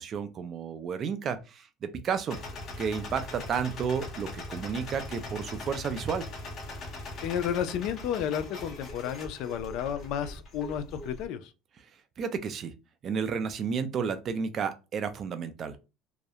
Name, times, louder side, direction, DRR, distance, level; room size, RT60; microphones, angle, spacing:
voice 1, 0.0-2.4 2.8-6.3 12.2-12.7 13.0-15.8, right 6 dB, 35° right, 0.3 m, -32 dB
sound 1, 2.3-11.2, left 2 dB, 40° left, 0.7 m, -41 dB
voice 2, 7.2-11.5, left 9 dB, 60° left, 0.3 m, -32 dB
2.3 x 2.0 x 2.7 m
cardioid pair, 145°, 0 cm